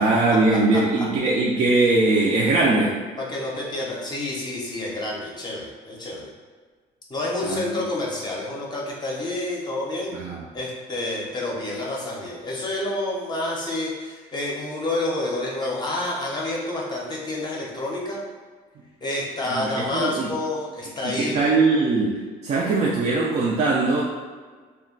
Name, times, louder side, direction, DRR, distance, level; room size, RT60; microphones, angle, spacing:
voice 1, 0.0-2.9 7.4-7.7 10.1-10.4 19.5-20.3 21.0-24.0, right 3 dB, 40° right, -4 dB, 0.4 m, -21 dB
voice 2, 3.2-6.3 7.1-10.1 10.5-18.2 19.0-21.6, left 2 dB, 25° left, -3 dB, 0.6 m, -29 dB
2.2 x 2.1 x 3.7 m, 1.5 s
cardioid pair, 110°, 17 cm